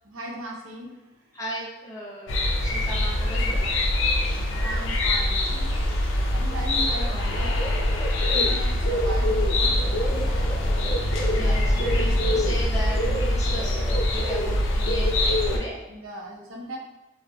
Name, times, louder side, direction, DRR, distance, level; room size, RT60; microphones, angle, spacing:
voice 1, 0.0-1.1 4.5-5.8 6.1-7.6 7.9-10.3 11.0-12.3 15.9-16.8, right 1 dB, 85° right, 0 dB, 0.5 m, -39 dB
voice 2, 1.3-3.7 11.2-15.8, equal, 15° left, -5 dB, 0.6 m, -36 dB
sound 1, 2.3-15.6, left 1 dB, 75° left, 0.5 m, -23 dB
3.5 x 2.0 x 2.6 m, 1.1 s
head